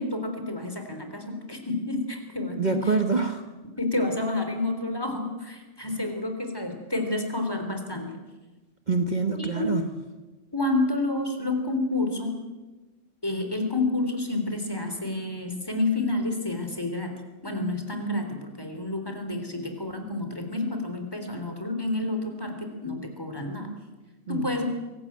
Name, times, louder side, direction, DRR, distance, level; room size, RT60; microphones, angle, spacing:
voice 1, 0.0-2.9 3.8-8.1 9.4-9.7 10.5-12.4 13.2-17.1 17.4-23.7 24.3-24.7, left 2 dB, 20° left, 5 dB, 3.5 m, -29 dB
voice 2, 2.6-3.4 8.9-9.8 24.3-24.5, right 4 dB, 40° right, 6 dB, 1.5 m, -25 dB
24.0 x 17.5 x 8.7 m, 1.2 s
omnidirectional pair, 1.2 m